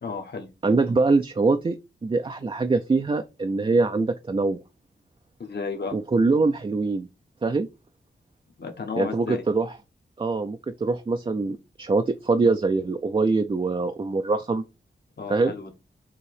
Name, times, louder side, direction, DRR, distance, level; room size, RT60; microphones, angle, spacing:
voice 1, 0.0-0.5 5.4-6.0 8.6-9.4 15.2-15.7, left 4 dB, 60° left, 1.3 m, -33 dB
voice 2, 0.6-1.8 2.0-4.6 5.9-7.1 7.4-7.7 9.0-9.7 10.2-14.6 15.3-15.5, right 3 dB, 25° right, 0.4 m, -23 dB
6.9 x 2.9 x 4.8 m
wide cardioid pair, 135°, 20 cm